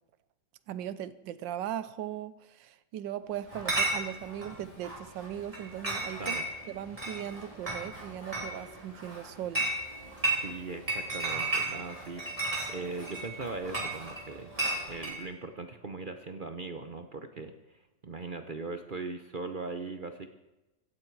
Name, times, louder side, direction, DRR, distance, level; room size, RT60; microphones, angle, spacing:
voice 1, 0.7-6.4 6.7-9.7, right 11 dB, 85° right, 1.4 m, -38 dB
Chatter / Chink clink, 3.5-15.2, right 2 dB, 20° right, 3.8 m, -34 dB
voice 2, 10.4-14.5 14.9-20.3, right 3 dB, 45° right, 0.6 m, -40 dB
16.0 x 15.0 x 4.7 m
omnidirectional pair, 2.0 m